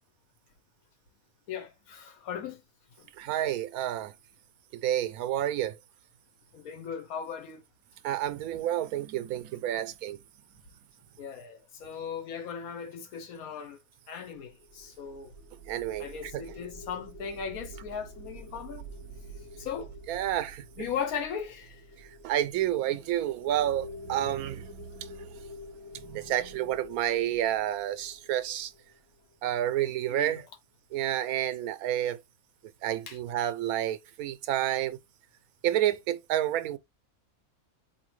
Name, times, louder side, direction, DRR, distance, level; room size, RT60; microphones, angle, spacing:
voice 1, 1.5-2.6 3.0-3.1 6.5-7.6 11.2-13.8 14.1-15.3 16.0-18.9 19.6-19.9 20.8-21.8 30.1-30.5 31.6-31.7 33.1-33.2, left 7 dB, 80° left, 1.2 m, -38 dB
voice 2, 3.2-4.1 4.7-5.8 8.0-10.2 15.7-16.4 20.1-20.6 22.2-25.3 25.9-28.7 29.4-30.4 30.9-32.2 32.8-35.0 35.6-36.8, right 12 dB, 85° right, 1.1 m, -30 dB
sound 1, 14.3-29.5, equal, 55° left, 1.1 m, -48 dB
4.5 x 2.7 x 3.1 m
omnidirectional pair, 1.5 m